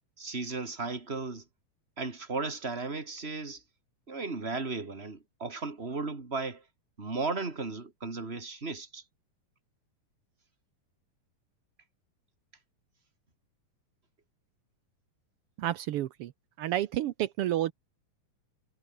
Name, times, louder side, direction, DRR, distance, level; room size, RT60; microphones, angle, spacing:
voice 1, 0.2-1.4 2.0-3.6 4.1-6.6 7.0-9.0, right 3 dB, 20° right, 2.9 m, -35 dB
voice 2, 15.6-16.3 16.6-17.7, right 13 dB, 80° right, 1.3 m, -30 dB
omnidirectional pair, 3.7 m